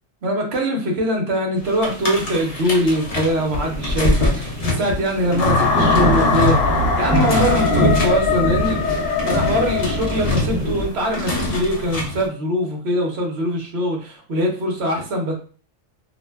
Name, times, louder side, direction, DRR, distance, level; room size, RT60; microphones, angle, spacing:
voice 1, 0.2-15.3, equal, 60° right, 1 dB, 0.9 m, -22 dB
sound 1, 1.6-10.9, right 1 dB, 30° right, 0.9 m, -25 dB
sound 2, 1.8-12.3, left 2 dB, 40° left, 0.5 m, -25 dB
sound 3, 5.4-10.4, left 5 dB, 75° left, 1.0 m, -21 dB
2.6 x 2.1 x 3.3 m, 0.41 s
omnidirectional pair, 1.3 m